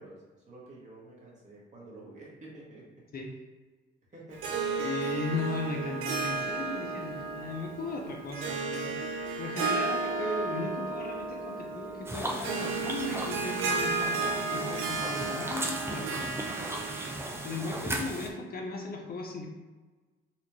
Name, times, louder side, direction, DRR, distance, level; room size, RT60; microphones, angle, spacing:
voice 1, 0.0-2.9 3.3-3.4 4.1-4.9, right 2 dB, 35° right, -4 dB, 1.5 m, -49 dB
Harp, 4.3-18.1, right 3 dB, 85° right, 0.6 m, -33 dB
voice 2, 4.8-17.0 17.4-19.5, left 3 dB, 50° left, 1 dB, 0.7 m, -37 dB
sound 1, 12.1-18.3, right 1 dB, 10° right, 0.5 m, -37 dB
4.1 x 2.5 x 3.0 m, 1.3 s
cardioid pair, 90°, 20 cm